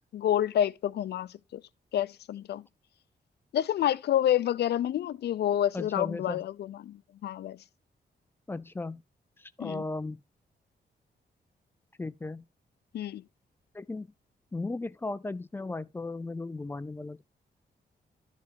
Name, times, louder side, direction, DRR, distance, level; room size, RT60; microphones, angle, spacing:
voice 1, 0.1-1.6 1.9-2.6 3.5-7.6 9.6-9.8 12.9-13.2, left 11 dB, 75° left, 0.5 m, -28 dB
voice 2, 5.7-6.4 8.5-9.0 9.4-10.2 12.0-12.4 13.7-14.1 14.5-17.2, left 3 dB, 15° left, 0.3 m, -36 dB
12.5 x 4.9 x 3.5 m
wide cardioid pair, 165°, 17 cm